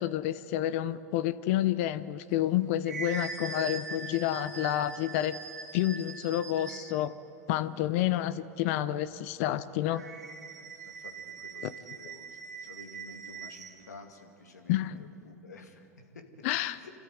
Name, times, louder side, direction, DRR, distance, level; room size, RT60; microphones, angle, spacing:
voice 1, 0.0-5.4 5.7-7.1 7.5-10.0 11.6-11.7 14.7-15.1 16.4-16.8, left 13 dB, 55° left, 14 dB, 0.8 m, -29 dB
sound 1, 2.4-7.1 9.8-13.8, right 5 dB, 85° right, 2.0 m, -42 dB
voice 2, 10.6-11.6 11.9-12.3 12.6-15.9 16.1-16.2 16.7-16.9, left 3 dB, 85° left, 3 dB, 2.6 m, -51 dB
26.5 x 13.5 x 9.5 m, 2.7 s
hypercardioid pair, 95°, 9 cm